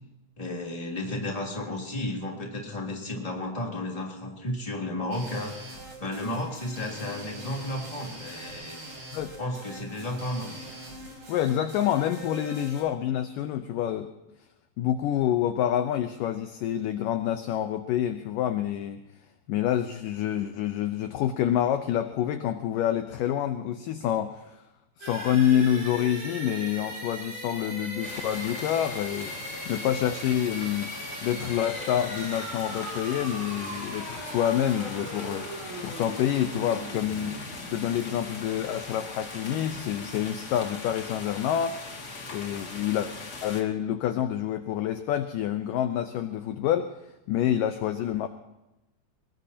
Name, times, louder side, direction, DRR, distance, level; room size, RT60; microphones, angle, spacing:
voice 1, 0.4-5.5 6.0-8.8 9.4-10.5, left 1 dB, 10° left, -1 dB, 2.7 m, -33 dB
sound 1, 5.1-12.8, right 1 dB, 35° right, 5.9 m, -43 dB
voice 2, 11.3-14.1 14.8-19.0 19.5-24.6 25.0-30.9 31.2-35.5 35.8-37.4 37.7-41.7 42.3-43.1 43.4-46.9 47.3-48.3, left 10 dB, 75° left, 8 dB, 2.1 m, -27 dB
sound 2, 25.0-38.7, right 1 dB, 65° right, 9.5 m, -39 dB
sound 3, 28.0-43.6, left 3 dB, 35° left, 1.9 m, -40 dB
23.0 x 21.5 x 2.9 m, 0.95 s
omnidirectional pair, 4.5 m